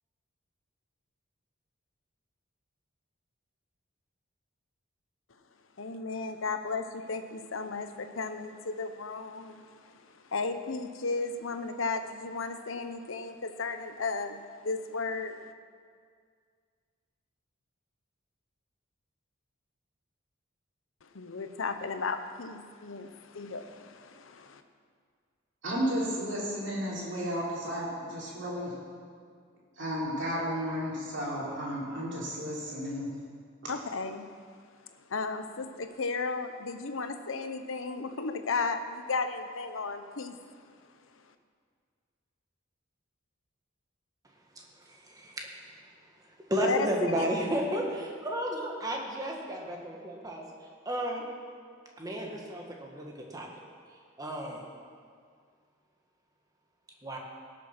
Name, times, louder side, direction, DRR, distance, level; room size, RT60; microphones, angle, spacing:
voice 1, 5.8-9.7 10.3-15.4 21.1-24.6 33.7-34.3 35.1-40.4 46.6-46.9, left 4 dB, 75° left, 8 dB, 0.8 m, -34 dB
voice 2, 25.6-28.7 29.8-33.1, equal, 60° right, -5 dB, 3.7 m, -33 dB
voice 3, 44.9-45.5 46.5-50.4 50.8-51.2 52.0-53.5 54.2-54.7 57.0-57.2, right 1 dB, 20° right, 0 dB, 1.6 m, -32 dB
17.5 x 6.9 x 5.9 m, 2.1 s
head